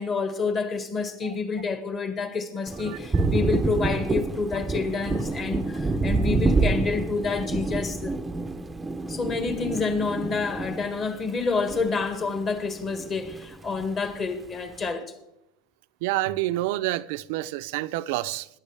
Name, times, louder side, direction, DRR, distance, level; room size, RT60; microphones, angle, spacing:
voice 1, 0.0-8.2 9.1-15.1, left 4 dB, 30° left, 1.8 m, -28 dB
Thunder, 2.7-12.4 12.7-13.9, right 3 dB, 10° right, 0.7 m, -28 dB
voice 2, 2.8-3.3 16.0-18.5, right 16 dB, 70° right, 0.5 m, -28 dB
21.5 x 10.5 x 3.4 m
supercardioid pair, 135°, 0 cm